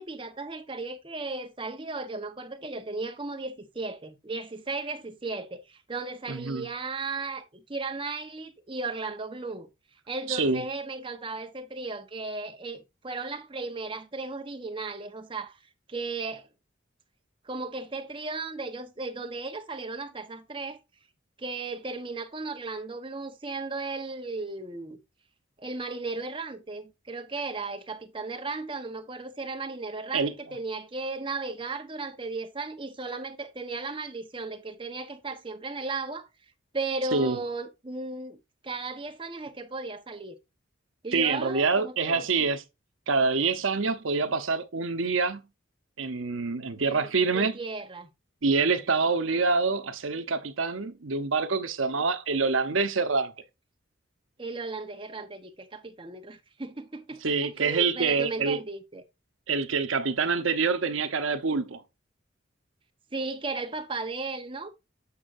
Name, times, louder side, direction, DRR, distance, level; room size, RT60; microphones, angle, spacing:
voice 1, 0.0-9.7 10.1-15.6 15.9-16.5 17.4-20.8 21.4-25.0 25.6-36.3 36.7-38.4 38.6-40.4 41.0-42.5 46.8-48.1 54.4-59.0 63.1-64.7, right 3 dB, 25° right, 1.0 m, -35 dB
voice 2, 6.3-6.7 10.3-10.6 30.1-30.4 37.1-37.4 41.1-42.6 43.1-45.4 46.0-47.6 48.4-53.3 57.2-58.6 59.5-61.8, right 4 dB, 85° right, 0.9 m, -26 dB
8.3 x 6.1 x 2.6 m
head